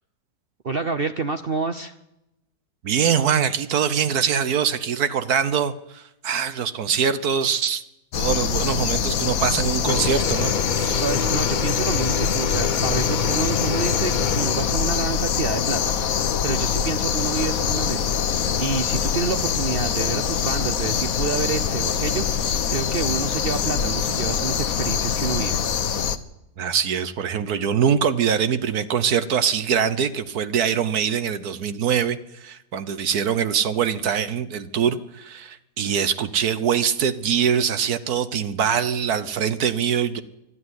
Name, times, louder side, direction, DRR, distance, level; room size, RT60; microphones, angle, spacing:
voice 1, 0.6-2.0 11.0-16.1 16.4-18.1 18.6-25.6, right 5 dB, 45° right, 9 dB, 0.8 m, -28 dB
voice 2, 2.8-7.8 8.2-11.0 26.6-40.2, right 7 dB, 70° right, 13 dB, 1.5 m, -23 dB
sound 1, 8.1-26.2, left 7 dB, 60° left, 1.3 m, -24 dB
Mechanisms / Drill, 9.9-15.4, left 5 dB, 40° left, 0.7 m, -28 dB
22.5 x 12.5 x 9.7 m, 0.91 s
omnidirectional pair, 1.7 m